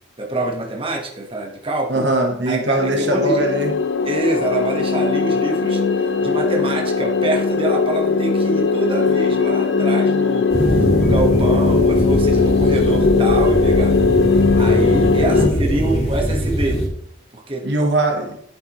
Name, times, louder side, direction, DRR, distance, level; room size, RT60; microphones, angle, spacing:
voice 1, 0.2-2.0 2.5-3.4 4.0-14.0 14.6-16.8 17.3-18.1, right 2 dB, 25° right, 1.3 m, -26 dB
voice 2, 1.9-3.7 15.3-15.5 17.6-18.4, right 1 dB, 60° right, 1.2 m, -20 dB
sound 1, 2.8-15.5, left 4 dB, 65° left, 0.7 m, -18 dB
sound 2, 10.5-16.9, right 1 dB, 30° left, 2.1 m, -21 dB
9.2 x 7.9 x 3.1 m
head